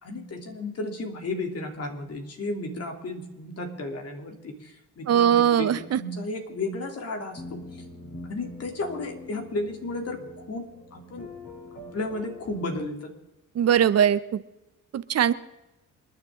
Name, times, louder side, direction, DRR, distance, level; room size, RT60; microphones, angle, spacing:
voice 1, 0.0-7.8 8.3-11.3 11.7-13.1, left 2 dB, 55° left, 3 dB, 3.2 m, -34 dB
voice 2, 5.1-6.0 13.6-14.4 14.9-15.3, right 9 dB, 55° right, 14 dB, 0.8 m, -21 dB
sound 1, 7.3-12.8, left 1 dB, 35° left, 6.2 m, -44 dB
28.0 x 10.5 x 3.8 m, 0.98 s
cardioid pair, 90°, 30 cm